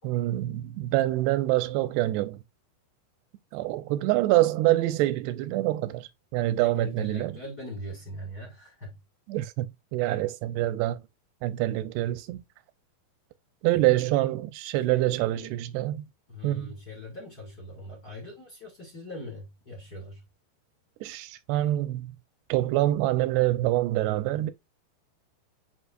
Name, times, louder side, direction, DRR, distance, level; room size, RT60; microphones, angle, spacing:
voice 1, 0.0-2.4 3.5-7.4 9.3-11.0 11.4-12.4 13.6-16.1 16.4-16.7 21.0-22.1 22.5-24.5, right 16 dB, 90° right, 2.7 m, -26 dB
voice 2, 6.6-9.0 13.7-14.0 14.9-15.5 16.3-20.2, left 1 dB, 30° left, 2.0 m, -42 dB
8.4 x 5.1 x 2.4 m
omnidirectional pair, 4.8 m